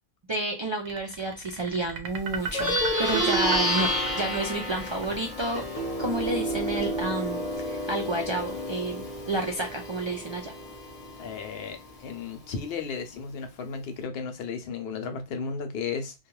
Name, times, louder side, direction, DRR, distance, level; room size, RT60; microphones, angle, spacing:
voice 1, 0.3-3.9 4.1-5.6 6.0-10.5, right 2 dB, 50° right, 0.3 m, -30 dB
sound 1, 0.9-8.0, right 5 dB, 85° right, 0.8 m, -37 dB
Plucked string instrument, 2.4-12.1, equal, 40° left, 0.8 m, -30 dB
voice 2, 11.2-16.1, left 5 dB, 75° left, 0.8 m, -34 dB
2.3 x 2.3 x 3.0 m
omnidirectional pair, 1.0 m